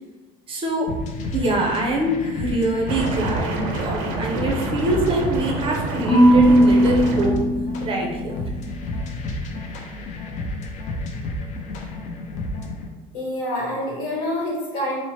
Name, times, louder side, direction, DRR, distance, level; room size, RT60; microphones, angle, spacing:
voice 1, 0.5-0.9 1.3-7.5 7.8-8.4, right 1 dB, 30° right, 0 dB, 0.5 m, -24 dB
sound 1, 0.9-12.9, left 2 dB, 45° left, 0.4 m, -31 dB
sound 2, 2.9-7.3, right 2 dB, 85° right, 0.5 m, -28 dB
Marimba xylophone / Wood, 6.1-8.3, right 1 dB, 20° left, 0.8 m, -17 dB
voice 2, 13.1-15.0, left 1 dB, 75° left, -4 dB, 1.2 m, -27 dB
2.8 x 2.0 x 3.0 m, 1.2 s
cardioid pair, 125°, 18 cm